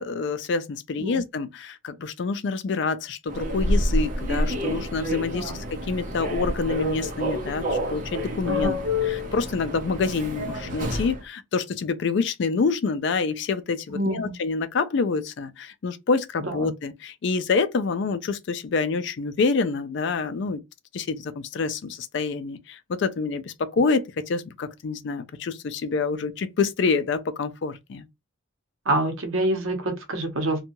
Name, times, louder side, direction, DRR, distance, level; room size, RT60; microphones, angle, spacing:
voice 1, 0.0-8.8 9.0-20.6 20.9-28.0, left 4 dB, 55° left, 0.4 m, -27 dB
Human voice / Subway metro underground, 3.3-11.2, left 1 dB, 40° right, 0.6 m, -28 dB
voice 2, 13.9-14.3 16.5-16.7 28.9-30.6, right 1 dB, 75° right, 0.8 m, -26 dB
2.7 x 2.2 x 2.9 m
head